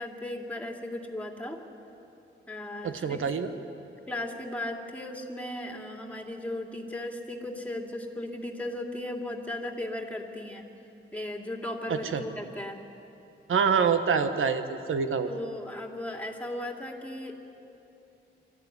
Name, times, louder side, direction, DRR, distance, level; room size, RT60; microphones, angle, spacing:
voice 1, 0.0-1.6 2.5-3.2 4.1-10.7 11.1-12.8 15.3-17.4, left 1 dB, 5° left, 2 dB, 2.5 m, -36 dB
voice 2, 2.8-3.5 11.9-12.2 13.5-15.3, right 6 dB, 85° right, 9 dB, 1.3 m, -26 dB
24.5 x 14.0 x 9.6 m, 2.9 s
cardioid pair, 95°, 20 cm